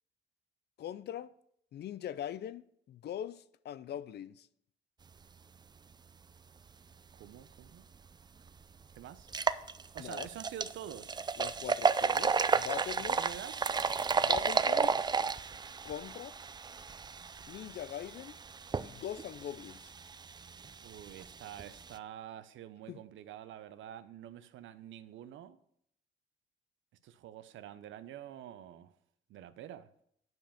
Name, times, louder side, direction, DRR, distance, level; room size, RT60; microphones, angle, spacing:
voice 1, 0.8-1.3 1.7-4.5 10.0-10.3 11.4-13.2 14.2-15.1 15.8-16.3 17.5-18.4 18.8-19.9 22.9-23.0, left 10 dB, 55° left, 0.4 m, -42 dB
voice 2, 7.1-7.9 8.9-9.3 9.9-11.2 13.0-13.7 20.8-25.6 27.0-28.9 29.3-29.9, right 11 dB, 75° right, 0.6 m, -47 dB
sound 1, 7.9-8.0 8.5-8.6 9.2-22.0, right 5 dB, 20° right, 0.3 m, -33 dB
9.3 x 5.3 x 5.7 m
cardioid pair, 90°, 20 cm